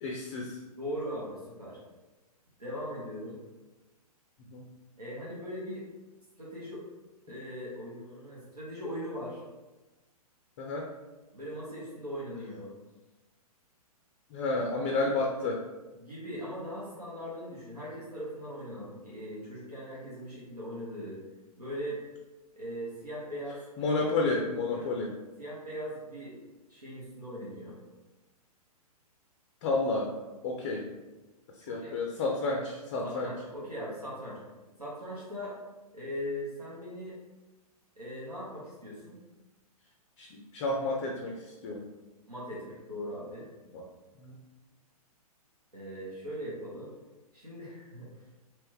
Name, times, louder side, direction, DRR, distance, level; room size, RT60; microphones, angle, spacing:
voice 1, 0.0-0.6 4.5-4.6 10.6-10.9 14.3-15.6 23.8-25.2 29.6-30.1 30.4-30.9 31.7-33.3 40.2-41.8 43.7-43.8 44.2-44.4, left 2 dB, 25° left, 1 dB, 0.4 m, -31 dB
voice 2, 0.8-1.8 2.6-3.4 5.0-5.9 6.4-6.8 7.3-9.4 11.3-12.7 16.0-21.2 21.6-22.0 22.5-23.6 24.7-24.9 25.4-26.4 26.7-27.8 31.7-32.0 33.0-34.4 34.8-35.6 35.9-37.2 37.9-39.2 42.3-43.5 45.7-46.9 47.3-48.1, equal, 90° right, -7 dB, 1.1 m, -40 dB
3.3 x 3.0 x 3.1 m, 1.1 s
figure-of-eight pair, 115°, 20 cm